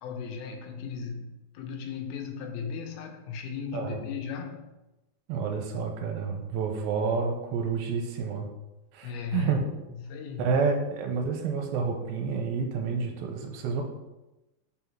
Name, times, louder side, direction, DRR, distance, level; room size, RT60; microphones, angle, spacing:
voice 1, 0.0-4.6 9.0-9.6 10.0-10.6, left 6 dB, 85° left, 3 dB, 2.6 m, -36 dB
voice 2, 5.3-8.5 8.9-9.6 10.4-13.8, right 5 dB, 85° right, 3 dB, 2.5 m, -29 dB
5.7 x 4.0 x 4.5 m, 1.0 s
omnidirectional pair, 4.3 m